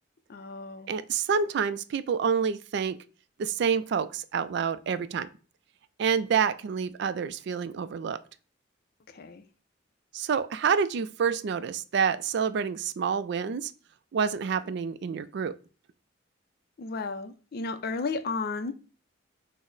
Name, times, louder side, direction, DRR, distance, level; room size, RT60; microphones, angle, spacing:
voice 1, 0.3-1.0 9.1-9.4 16.8-18.7, left 4 dB, 55° left, 0.4 m, -33 dB
voice 2, 0.9-3.0 3.4-5.3 6.0-8.2 10.1-13.7 14.1-15.5, right 6 dB, 60° right, 0.3 m, -28 dB
5.9 x 2.0 x 3.8 m
head